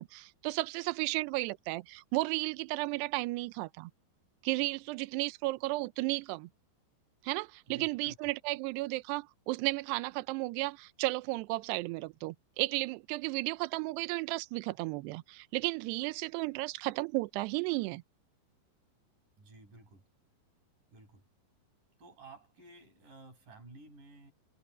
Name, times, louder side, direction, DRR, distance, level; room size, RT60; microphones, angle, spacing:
voice 1, 0.0-3.9 4.4-6.5 7.2-18.0, right 21 dB, 85° right, 2.4 m, -34 dB
voice 2, 7.7-8.3 19.4-20.0 20.9-21.2 22.0-24.3, right 2 dB, 45° right, 9.4 m, -53 dB
omnidirectional pair, 5.4 m